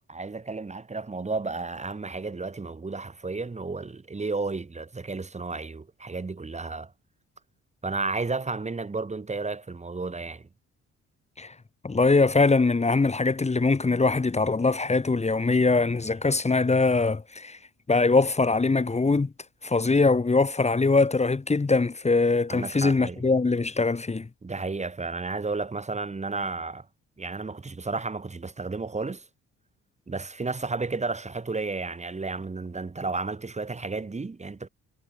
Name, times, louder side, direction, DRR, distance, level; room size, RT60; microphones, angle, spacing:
voice 1, 0.0-6.9 7.8-10.4 22.5-23.2 24.4-26.9 27.2-29.2 30.1-34.7, right 3 dB, 25° right, 2.1 m, -32 dB
voice 2, 11.8-17.6 17.9-19.3 19.6-24.3, left 3 dB, 20° left, 2.0 m, -22 dB
cardioid pair, 90°, 30 cm